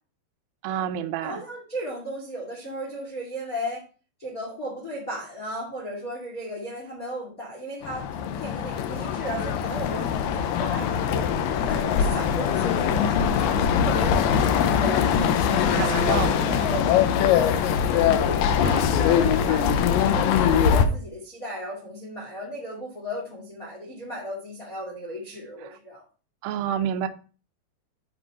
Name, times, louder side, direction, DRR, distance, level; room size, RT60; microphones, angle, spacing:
voice 1, 0.6-1.4 15.8-16.6 25.7-25.8 26.4-27.1, right 9 dB, 80° right, 8 dB, 2.1 m, -28 dB
voice 2, 1.2-3.8 4.2-13.2 13.8-15.1 15.5-17.0 17.8-26.0, equal, 25° left, -2 dB, 2.0 m, -35 dB
sound 1, 7.8-20.9, left 8 dB, 85° left, 2.0 m, -22 dB
11.0 x 4.5 x 4.2 m, 0.37 s
omnidirectional pair, 5.0 m